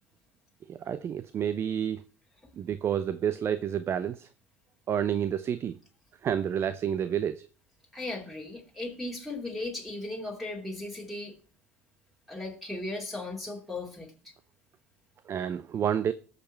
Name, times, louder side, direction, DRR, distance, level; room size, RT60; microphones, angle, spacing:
voice 1, 0.7-2.0 2.6-4.3 4.9-5.8 6.2-7.5 15.3-16.1, right 9 dB, 35° right, 0.6 m, -29 dB
voice 2, 7.9-11.4 12.3-14.1, left 2 dB, ahead, 2.8 m, -37 dB
19.0 x 6.7 x 4.4 m
hypercardioid pair, 75°, 7 cm